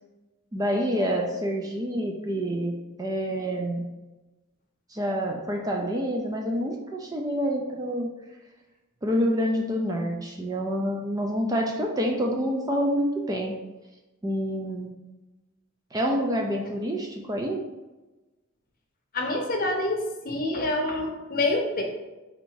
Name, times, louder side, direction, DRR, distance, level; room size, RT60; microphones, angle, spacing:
voice 1, 0.5-3.8 4.9-8.1 9.0-13.5 14.2-14.9 15.9-17.6, equal, 15° right, 1 dB, 0.4 m, -27 dB
voice 2, 19.1-21.8, left 2 dB, 40° left, 1 dB, 0.8 m, -27 dB
4.3 x 2.6 x 4.6 m, 1.1 s
head